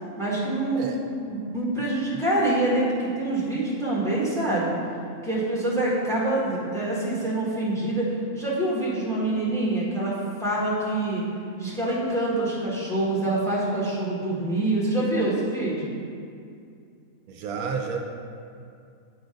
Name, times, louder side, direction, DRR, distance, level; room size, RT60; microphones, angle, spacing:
voice 1, 0.2-1.0 1.3-4.7 5.2-11.2 11.6-15.9, right 2 dB, ahead, -6 dB, 1.4 m, -26 dB
voice 2, 17.3-18.0, right 6 dB, 80° right, 3 dB, 1.1 m, -30 dB
8.3 x 3.8 x 5.0 m, 2.4 s
omnidirectional pair, 1.6 m